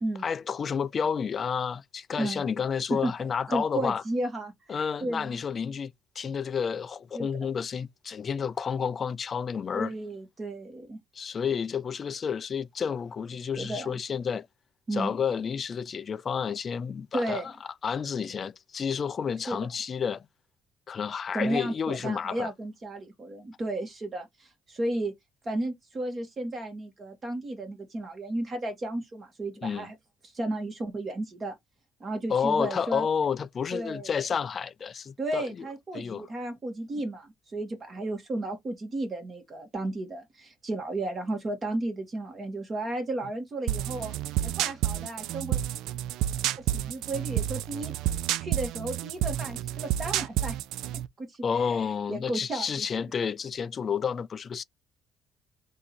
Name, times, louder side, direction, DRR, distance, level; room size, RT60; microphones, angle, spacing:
voice 1, 0.2-4.0 4.7-9.9 11.1-14.5 14.9-17.5 17.8-20.2 20.9-22.5 29.6-29.9 32.3-35.7 35.9-36.3 51.4-54.6, left 6 dB, 35° left, 0.3 m, -30 dB
voice 2, 3.5-5.4 7.1-7.3 9.7-11.0 13.6-14.0 14.9-15.2 17.1-17.5 19.5-19.6 21.3-25.1 25.5-29.9 30.3-31.6 32.0-33.1 33.7-34.1 35.2-44.1 44.4-45.6 46.7-47.9 48.3-50.6 51.2-52.9, right 1 dB, 30° right, 1.9 m, -33 dB
sound 1, 43.7-51.1, right 12 dB, 80° right, 0.4 m, -30 dB
3.6 x 2.7 x 4.3 m
cardioid pair, 140°, 0 cm